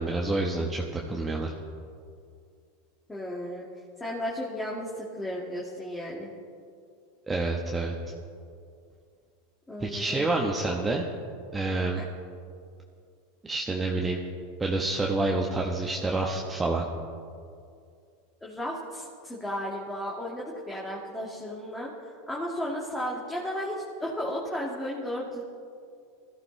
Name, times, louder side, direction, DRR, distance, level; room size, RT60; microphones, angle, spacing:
voice 1, 0.0-1.5 7.3-7.9 9.8-11.0 11.5-12.0 13.4-14.2 14.6-16.9, right 2 dB, 15° right, -1 dB, 1.3 m, -28 dB
voice 2, 3.1-3.7 4.0-6.3 9.7-10.3 10.6-10.8 12.0-12.1 18.4-25.4, equal, 10° left, -5 dB, 2.2 m, -34 dB
20.5 x 14.0 x 3.4 m, 2.3 s
hypercardioid pair, 105°, 0 cm